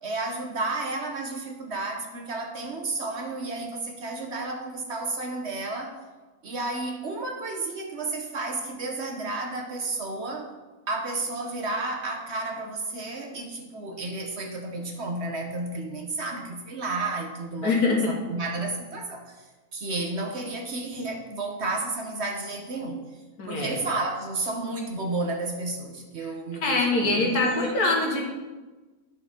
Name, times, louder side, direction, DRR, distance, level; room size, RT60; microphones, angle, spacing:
voice 1, 0.0-6.0 6.4-10.5 10.9-19.4 19.7-23.0 23.5-28.1, right 2 dB, 50° right, 3 dB, 1.1 m, -32 dB
voice 2, 17.6-18.1 23.4-23.8 26.6-28.3, left 3 dB, 80° left, 0 dB, 2.1 m, -24 dB
11.0 x 6.3 x 3.7 m, 1.2 s
omnidirectional pair, 1.6 m